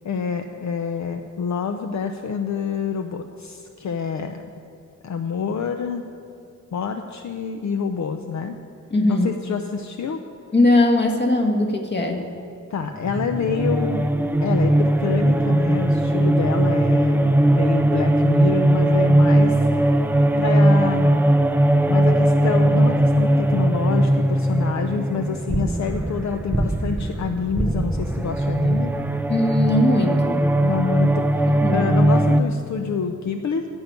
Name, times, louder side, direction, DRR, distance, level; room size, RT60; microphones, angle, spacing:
voice 1, 0.0-4.4 5.0-6.0 6.7-8.6 9.1-10.2 12.7-14.0 14.4-19.9 20.4-21.2 21.9-28.9 30.6-33.7, left 5 dB, 65° left, 6 dB, 0.6 m, -27 dB
voice 2, 8.9-9.3 10.5-12.3 29.3-30.4 31.5-31.9, left 2 dB, 35° left, 3 dB, 1.4 m, -20 dB
sound 1, 13.0-32.4, right 1 dB, 5° right, 0.3 m, -19 dB
13.5 x 5.4 x 9.2 m, 2.5 s
wide cardioid pair, 140°, 31 cm